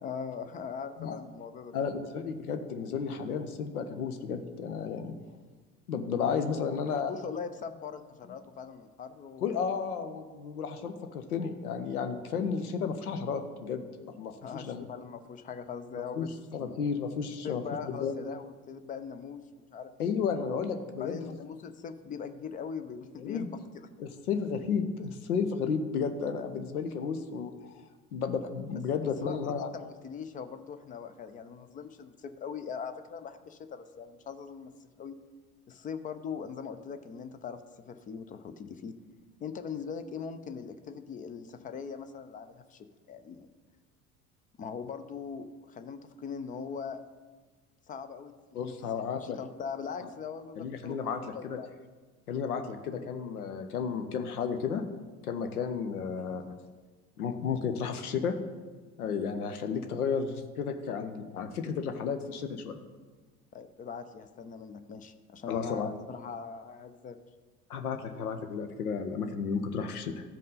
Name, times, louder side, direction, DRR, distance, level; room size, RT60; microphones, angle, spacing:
voice 1, 0.0-1.8 6.6-9.5 14.4-16.8 17.4-20.2 21.0-23.6 29.2-35.2 35.7-38.9 39.4-43.5 44.6-47.0 47.9-48.7 49.1-51.7 63.5-67.2, left 6 dB, 20° left, 10 dB, 0.4 m, -41 dB
voice 2, 1.7-5.1 5.9-7.2 9.4-14.9 16.2-17.6 18.0-18.2 20.0-21.2 23.2-23.5 24.0-27.8 28.1-29.7 48.5-49.4 50.0-50.1 50.6-51.6 52.3-54.8 55.2-56.5 57.2-58.3 59.0-62.8 65.5-65.9 67.7-70.2, left 6 dB, 70° left, 7 dB, 0.8 m, -33 dB
13.0 x 5.3 x 3.9 m, 1.3 s
figure-of-eight pair, 65°, 46 cm